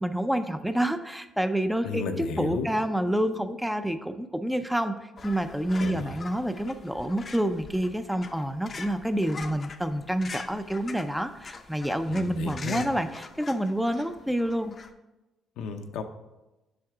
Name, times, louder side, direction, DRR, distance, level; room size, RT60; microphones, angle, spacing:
voice 1, 0.0-14.7, right 1 dB, 5° right, 9 dB, 0.5 m, -28 dB
voice 2, 1.8-2.7 5.8-6.2 12.1-12.9 15.6-16.0, left 5 dB, 80° left, 6 dB, 0.7 m, -33 dB
sound 1, 5.2-14.9, left 4 dB, 40° left, 0.6 m, -43 dB
7.7 x 5.7 x 3.6 m, 1.0 s
cardioid pair, 90°, 0 cm